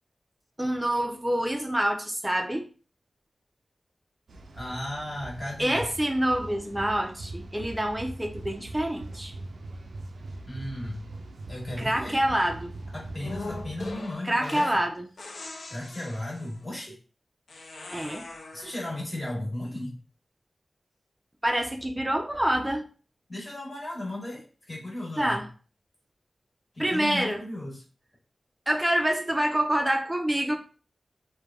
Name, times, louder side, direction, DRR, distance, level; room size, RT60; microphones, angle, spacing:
voice 1, 0.6-2.7 5.6-9.3 11.8-12.7 14.2-15.1 17.9-18.3 21.4-22.9 25.2-25.5 26.8-27.4 28.7-30.6, right 1 dB, 10° right, 2 dB, 0.4 m, -26 dB
sound 1, 4.3-13.9, right 2 dB, 90° right, 0.3 m, -41 dB
voice 2, 4.5-5.9 10.5-11.1 11.5-12.2 12.9-14.8 15.7-16.9 18.5-20.0 23.3-25.4 26.7-27.8, left 1 dB, 30° left, -3 dB, 1.2 m, -35 dB
sound 2, 13.2-14.8 15.2-16.6 17.5-18.9, left 2 dB, 75° left, 0.5 m, -41 dB
3.1 x 2.1 x 2.2 m, 0.37 s
wide cardioid pair, 95°, 0 cm